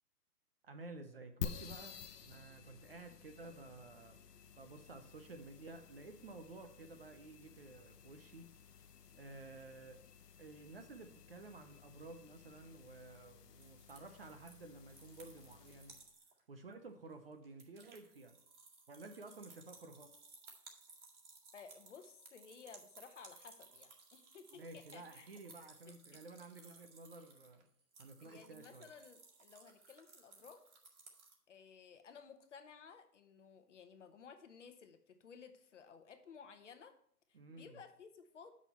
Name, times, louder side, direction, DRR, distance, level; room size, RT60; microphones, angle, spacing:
voice 1, 0.6-4.2 4.6-8.5 9.1-10.0 10.4-16.0 16.5-18.4 18.9-20.1 24.5-27.7 28.0-28.9 37.3-37.8, right 3 dB, 40° right, 7 dB, 0.7 m, -53 dB
sound 1, 1.4-16.1, left 7 dB, 80° left, 1.0 m, -52 dB
sound 2, 13.6-16.4 16.7-16.8 17.1-31.4, right 4 dB, 65° right, 2.1 m, -60 dB
voice 2, 21.5-25.3 25.9-26.2 28.2-30.7 31.5-36.9 37.3-38.6, left 6 dB, 50° left, 8 dB, 0.9 m, -57 dB
7.5 x 6.2 x 4.3 m, 0.64 s
hypercardioid pair, 165°, 47 cm